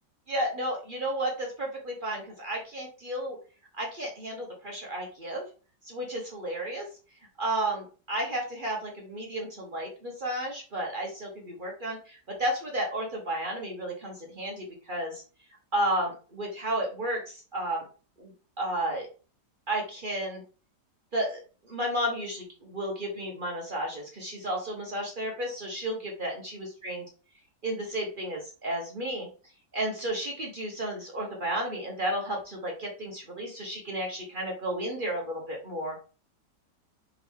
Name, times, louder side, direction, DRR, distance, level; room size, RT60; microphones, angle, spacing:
voice 1, 0.3-3.4 3.7-5.4 5.8-6.9 7.4-15.2 15.7-17.8 18.2-18.3 18.6-19.1 19.7-20.4 21.1-21.4 21.6-27.0 27.6-29.3 29.7-36.0, right 1 dB, 45° right, -1 dB, 0.6 m, -32 dB
3.5 x 3.1 x 3.5 m, 0.37 s
omnidirectional pair, 1.9 m